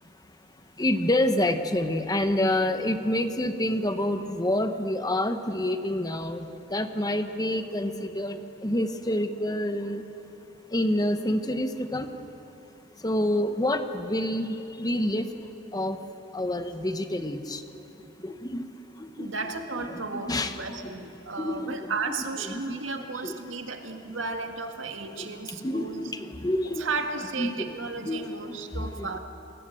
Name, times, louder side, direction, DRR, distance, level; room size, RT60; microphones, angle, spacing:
voice 1, 0.8-10.0 10.7-12.1 13.0-15.3 15.7-16.0 16.3-17.6 18.2-18.6 19.0-19.3 19.6-20.9 21.4-21.8 22.1-22.2 22.5-23.3 25.2-25.3 25.6-26.9 27.4-27.7 28.0-29.1, left 1 dB, 20° left, 8 dB, 1.1 m, -28 dB
voice 2, 19.2-26.1 26.6-29.2, right 4 dB, 80° right, 5 dB, 1.9 m, -34 dB
29.0 x 20.5 x 7.7 m, 3.0 s
head